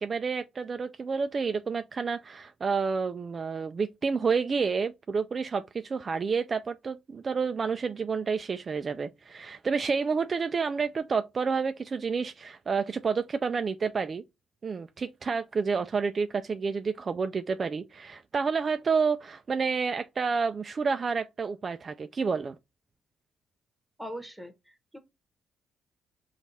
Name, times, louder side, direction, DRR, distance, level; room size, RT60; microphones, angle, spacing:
voice 1, 0.0-14.2 14.6-22.6, right 5 dB, 40° right, 0.3 m, -29 dB
voice 2, 24.0-25.0, equal, 5° right, 1.2 m, -41 dB
5.3 x 2.4 x 4.1 m
cardioid pair, 90°, 0 cm